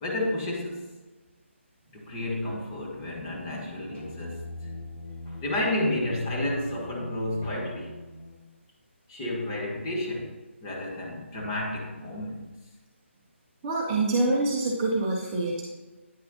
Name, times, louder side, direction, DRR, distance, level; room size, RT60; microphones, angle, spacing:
voice 1, 0.0-1.0 1.9-4.7 5.2-8.0 9.1-12.5, left 1 dB, 20° left, -2 dB, 1.2 m, -31 dB
sound 1, 2.0-8.4, left 1 dB, 65° left, 2.1 m, -43 dB
voice 2, 13.6-15.6, right 2 dB, 15° right, -4 dB, 0.8 m, -25 dB
9.2 x 6.3 x 2.9 m, 1.2 s
figure-of-eight pair, 150°, 7 cm